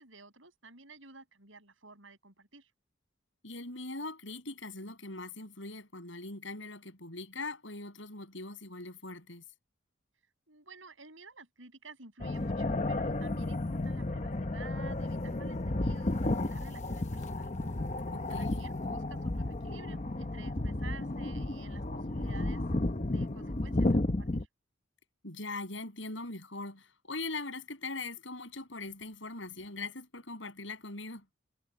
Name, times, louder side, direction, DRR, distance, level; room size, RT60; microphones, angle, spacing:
voice 1, 0.0-2.7 10.5-17.5 18.3-22.6 23.0-24.5, right 3 dB, 75° right, 8.0 m, -52 dB
voice 2, 3.4-9.4 18.1-18.7 25.2-31.2, left 2 dB, 70° left, 7.5 m, -41 dB
sound 1, 12.2-24.4, left 2 dB, 35° left, 0.9 m, -32 dB
head